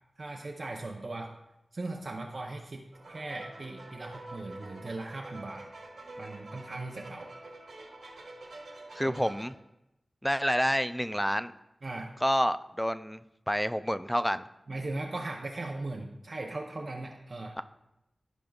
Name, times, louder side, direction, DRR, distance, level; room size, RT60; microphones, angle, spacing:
voice 1, 0.2-1.3 1.7-2.8 3.1-5.6 6.2-7.3 9.0-9.2 11.8-12.1 14.7-17.6, right 2 dB, 55° right, 0.7 m, -38 dB
sound 1, 2.9-9.5, right 2 dB, 85° right, 1.7 m, -47 dB
voice 2, 8.9-9.6 10.2-11.5 12.2-13.2 13.5-14.4 17.6-17.7, equal, ahead, 0.3 m, -28 dB
13.5 x 5.2 x 2.4 m
wide cardioid pair, 80°, 0 cm